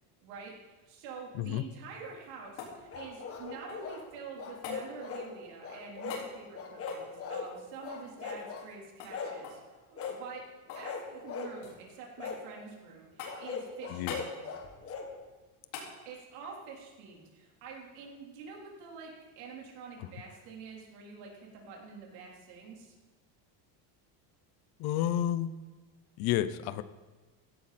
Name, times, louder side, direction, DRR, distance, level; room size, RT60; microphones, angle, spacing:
voice 1, 0.2-9.6 9.9-10.4 10.8-14.4 16.1-22.9, right 5 dB, 80° right, -1 dB, 3.9 m, -47 dB
sound 1, 2.0-4.0 4.6-4.8 6.1-6.3 6.8-8.7 9.0-9.1 9.4-9.7 10.0-10.9 11.2-11.8 12.2-12.8 13.2-13.6 14.1-14.3 15.7-15.9 18.3-18.4, left 6 dB, 80° left, 4.5 m, -45 dB
sound 2, 2.9-4.0 4.4-5.3 5.6-6.2 6.5-7.5 7.8-8.7 9.1-9.4 10.0-10.2 10.7-11.5 12.2-12.4 13.2-15.1, left 5 dB, 30° left, 1.7 m, -39 dB
voice 2, 13.9-14.2 20.0-20.1 24.8-25.5 26.2-26.8, left 12 dB, 50° left, 14 dB, 0.7 m, -30 dB
16.5 x 13.0 x 4.3 m, 1.3 s
cardioid pair, 175°, 48 cm